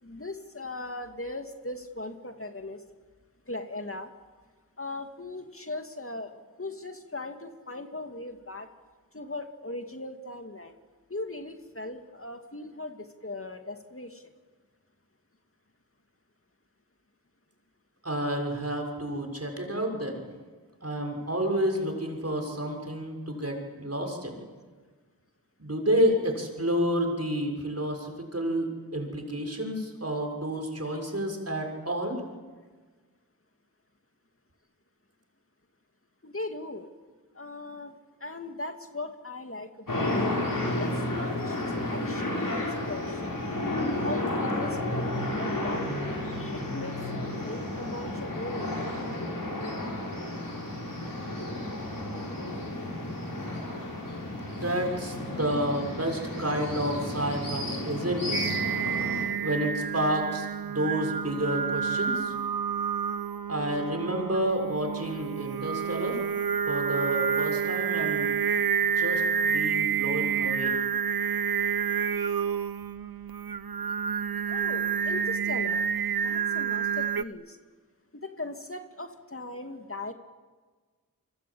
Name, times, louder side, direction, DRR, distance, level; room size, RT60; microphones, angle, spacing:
voice 1, 0.0-2.8 3.5-4.1 4.8-8.7 9.1-10.8 11.1-14.2 36.2-36.9 37.3-37.9 38.2-40.3 40.8-43.4 44.0-48.9 74.5-75.8 76.2-77.6 78.2-80.1, left 2 dB, 40° left, 6 dB, 2.6 m, -39 dB
voice 2, 18.0-20.3 20.8-24.4 25.6-32.2 54.5-58.4 59.4-62.3 63.5-66.2 66.7-68.4 69.0-70.8, equal, 45° right, 3 dB, 6.5 m, -30 dB
sound 1, 39.9-59.2, left 1 dB, 65° left, 6.8 m, -32 dB
Singing, 58.3-77.2, right 7 dB, 80° right, 0.8 m, -29 dB
28.5 x 24.0 x 8.8 m, 1.4 s
wide cardioid pair, 40°, 36 cm